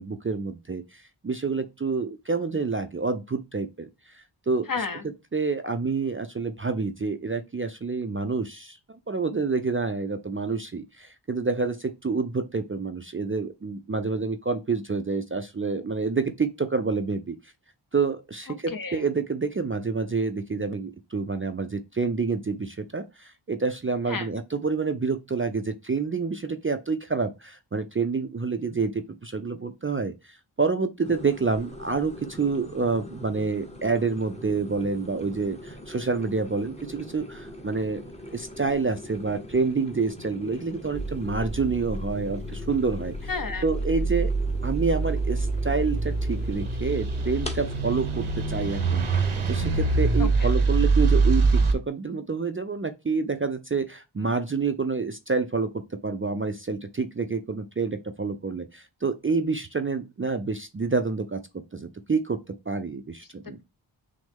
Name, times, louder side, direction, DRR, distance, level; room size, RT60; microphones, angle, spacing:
voice 1, 0.0-4.7 5.3-17.4 17.9-38.0 38.3-43.3 43.6-44.3 44.6-63.6, right 4 dB, 30° right, 0.4 m, -28 dB
voice 2, 4.7-5.0 18.7-19.0 24.1-24.3 43.3-43.6 50.2-50.5, left 4 dB, 45° left, 0.7 m, -31 dB
sound 1, 31.0-50.4, equal, 15° left, 0.8 m, -42 dB
sound 2, 40.9-51.7, right 3 dB, 90° right, 0.9 m, -25 dB
6.1 x 2.1 x 3.5 m
wide cardioid pair, 50°, 47 cm